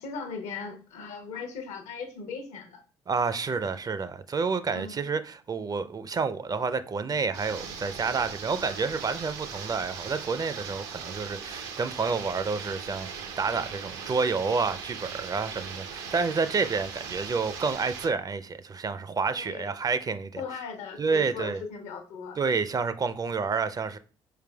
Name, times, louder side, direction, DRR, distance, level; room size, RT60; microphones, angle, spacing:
voice 1, 0.0-2.8 4.7-5.1 19.4-19.7 20.4-22.4, left 5 dB, 70° left, 0.8 m, -38 dB
voice 2, 3.1-20.4 21.0-21.6 22.4-24.0, right 4 dB, 30° right, 0.4 m, -29 dB
sound 1, 7.3-18.1, right 6 dB, 80° right, 0.6 m, -39 dB
4.6 x 3.3 x 2.2 m
hypercardioid pair, 50°, 12 cm